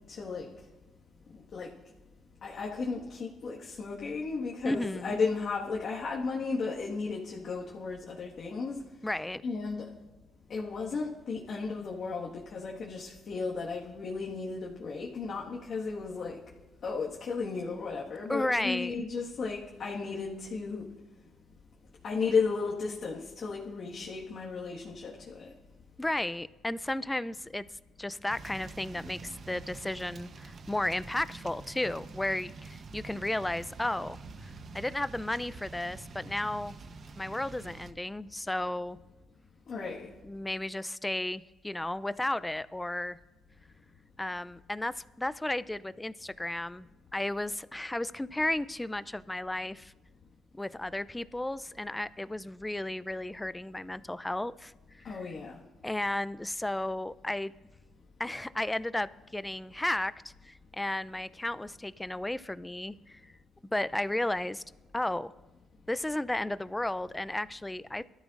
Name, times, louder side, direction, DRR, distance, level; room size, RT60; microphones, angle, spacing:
voice 1, 0.1-0.5 1.5-1.7 2.4-8.8 9.4-9.9 10.5-16.4 16.8-20.9 22.0-25.4 39.7-40.1 55.0-55.6, left 4 dB, 55° left, 1.6 m, -34 dB
voice 2, 4.6-5.2 9.0-9.4 18.3-18.9 26.0-27.6 28.0-34.2 34.7-36.8 37.2-39.0 40.2-43.2 44.2-46.9 47.1-49.9 50.5-54.7 55.0-55.2 55.8-57.5 58.2-63.2 63.7-64.6 64.9-65.3 65.9-68.0, left 1 dB, 10° left, 0.4 m, -33 dB
sound 1, 28.3-37.9, right 4 dB, 50° right, 0.9 m, -46 dB
22.5 x 13.0 x 2.5 m
cardioid pair, 90°, 0 cm